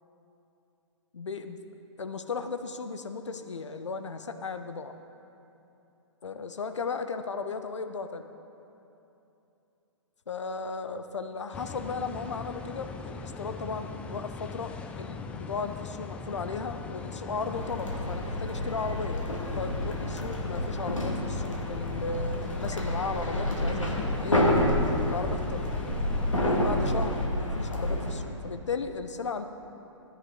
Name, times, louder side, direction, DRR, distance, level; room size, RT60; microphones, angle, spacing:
voice 1, 1.1-1.6 2.0-4.9 6.2-8.3 10.3-19.2 19.5-24.7 25.1-25.6 26.4-29.4, left 4 dB, 65° left, 8 dB, 0.8 m, -35 dB
sound 1, 11.5-27.3, left 4 dB, 5° left, 0.3 m, -40 dB
sound 2, 17.5-28.1, left 1 dB, 85° left, 2.2 m, -29 dB
sound 3, 18.4-27.2, right 2 dB, 70° right, 1.3 m, -41 dB
16.0 x 9.9 x 3.9 m, 2.9 s
figure-of-eight pair, 125°, 16 cm